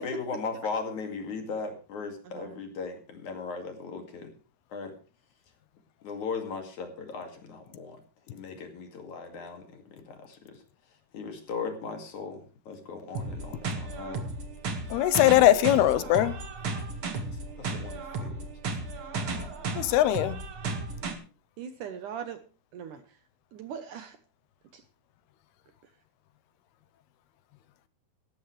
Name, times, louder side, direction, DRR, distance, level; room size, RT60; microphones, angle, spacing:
voice 1, 0.0-4.3 4.7-4.9 6.0-8.0 8.3-10.6 11.1-14.3 16.7-16.8 17.6-18.8 19.1-19.5, left 4 dB, 50° left, 4 dB, 3.5 m, -38 dB
sound 1, 13.1-21.1, right 3 dB, 45° right, 2.1 m, -34 dB
voice 2, 14.9-16.3 19.8-20.4, left 13 dB, 85° left, 14 dB, 2.8 m, -21 dB
voice 3, 21.6-22.4 22.7-23.0 23.5-24.2 24.7-24.8, right 8 dB, 70° right, 9 dB, 2.1 m, -40 dB
18.0 x 14.0 x 3.3 m, 0.35 s
omnidirectional pair, 4.6 m